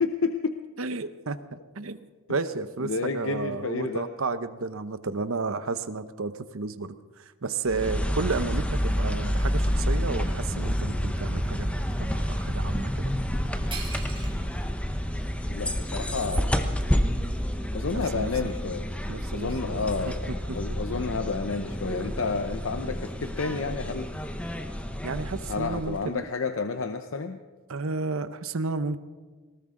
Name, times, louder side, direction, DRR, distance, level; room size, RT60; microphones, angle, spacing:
voice 1, 0.0-0.6 2.8-4.1 15.5-16.7 17.7-18.9 19.3-24.1 25.5-27.4, left 4 dB, 60° left, 8 dB, 0.7 m, -30 dB
voice 2, 0.8-13.1 18.1-18.3 19.1-19.8 25.0-26.2 27.7-29.0, right 3 dB, 65° right, 12 dB, 0.8 m, -32 dB
sound 1, 7.7-26.1, equal, 5° left, 0.8 m, -29 dB
sound 2, 13.3-13.4 13.7-14.7 15.2-15.3 15.9-17.3, right 5 dB, 25° right, 2.6 m, -42 dB
19.5 x 18.0 x 3.8 m, 1.3 s
head